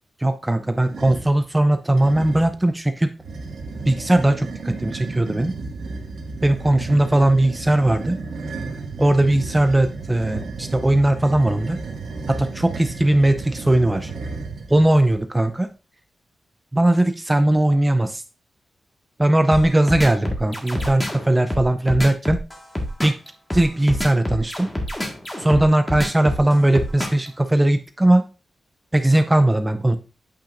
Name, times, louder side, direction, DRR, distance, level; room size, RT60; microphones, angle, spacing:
voice 1, 0.2-3.1 3.9-5.5 6.4-8.2 9.0-11.8 12.3-14.1 14.7-15.7 16.7-18.2 19.2-22.4 23.0-23.1 23.5-24.7 25.4-28.3 28.9-30.0, right 1 dB, 15° right, 9 dB, 0.5 m, -19 dB
sound 1, 0.8-1.4 2.0-2.6 3.2-15.2, right 3 dB, 85° right, 1.6 m, -33 dB
sound 2, 19.5-27.3, left 1 dB, 10° left, 1.7 m, -27 dB
8.5 x 6.0 x 2.6 m, 0.31 s
wide cardioid pair, 125°, 0 cm